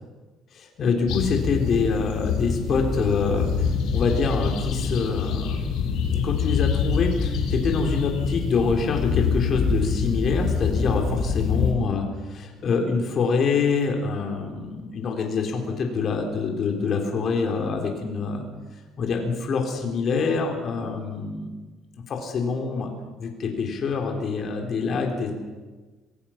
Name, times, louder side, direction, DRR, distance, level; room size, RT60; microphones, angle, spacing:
voice 1, 0.5-18.5 19.0-21.5 22.1-22.9 23.2-25.3, left 5 dB, 45° left, 2 dB, 3.9 m, -25 dB
sound 1, 1.1-11.7, left 5 dB, 75° left, 3.8 m, -25 dB
25.5 x 18.0 x 6.0 m, 1.3 s
cardioid pair, 120°, 0 cm